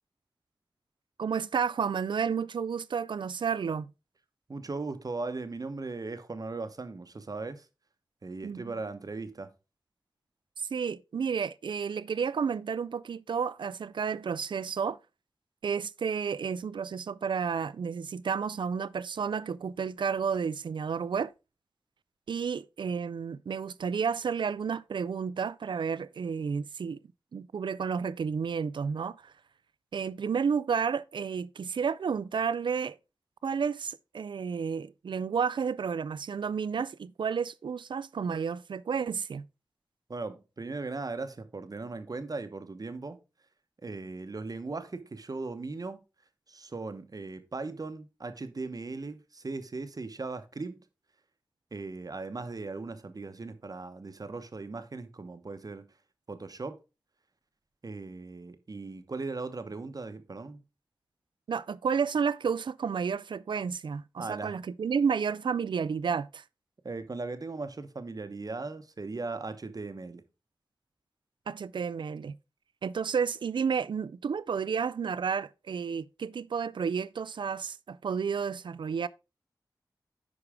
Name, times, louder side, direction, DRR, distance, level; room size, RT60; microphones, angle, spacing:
voice 1, 1.2-3.9 8.4-8.7 10.6-15.0 15.6-21.3 22.3-27.0 27.3-29.3 29.9-33.0 33.4-39.4 61.5-66.4 71.5-72.3 72.8-79.1, right 6 dB, 75° right, 0.3 m, -31 dB
voice 2, 4.5-7.7 8.2-9.5 40.1-43.2 43.8-46.0 46.5-50.8 51.7-55.9 56.3-56.8 57.8-60.6 64.2-64.6 66.8-70.2, right 3 dB, 50° right, 0.9 m, -38 dB
9.9 x 4.7 x 3.5 m
wide cardioid pair, 55°, 8 cm